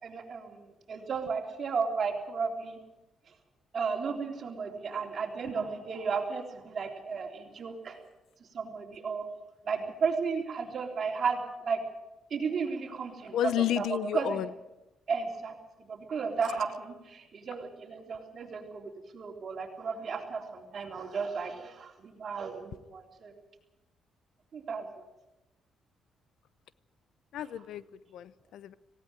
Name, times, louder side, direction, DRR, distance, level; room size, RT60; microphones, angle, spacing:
voice 1, 0.0-2.8 3.7-8.0 8.5-9.2 9.6-11.8 12.3-13.9 14.1-14.4 15.1-15.5 15.9-23.3 24.5-24.9, right 5 dB, 50° right, 3 dB, 3.7 m, -34 dB
voice 2, 13.3-14.4 27.3-27.8 28.1-28.7, left 12 dB, 75° left, 18 dB, 0.7 m, -31 dB
18.0 x 17.0 x 9.1 m, 0.99 s
cardioid pair, 90°, 0 cm